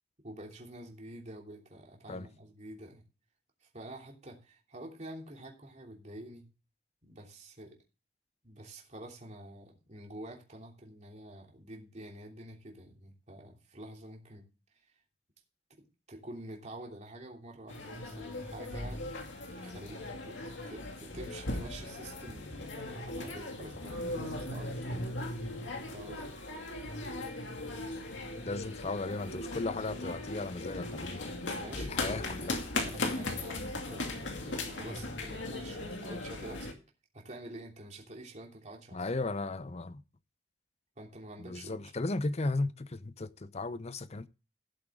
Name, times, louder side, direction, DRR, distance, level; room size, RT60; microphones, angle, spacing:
voice 1, 0.2-3.0 3.6-6.5 7.0-7.8 8.4-14.5 15.8-19.0 19.6-25.1 25.9-26.4 31.5-34.1 34.5-36.7 37.1-39.1 41.0-41.8, right 1 dB, 40° right, 3.1 m, -48 dB
sound 1, 17.7-36.7, left 2 dB, 85° left, 2.4 m, -38 dB
voice 2, 28.4-31.3 31.8-32.6 38.9-40.0 41.4-44.3, left 2 dB, 35° left, 0.6 m, -35 dB
16.5 x 8.0 x 3.7 m
head